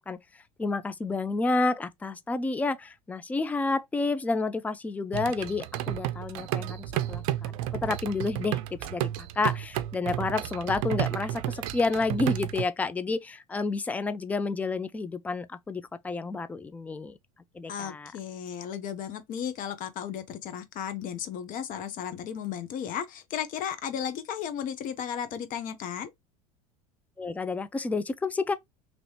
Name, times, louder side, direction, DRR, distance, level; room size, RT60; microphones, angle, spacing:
voice 1, 0.0-7.5 7.8-17.2 17.5-18.1 27.2-28.5, left 3 dB, 10° left, 0.3 m, -30 dB
sound 1, 5.1-12.6, right 13 dB, 65° right, 0.4 m, -32 dB
voice 2, 17.7-26.1, left 8 dB, 50° left, 0.8 m, -34 dB
3.0 x 2.7 x 3.1 m
hypercardioid pair, 90°, 18 cm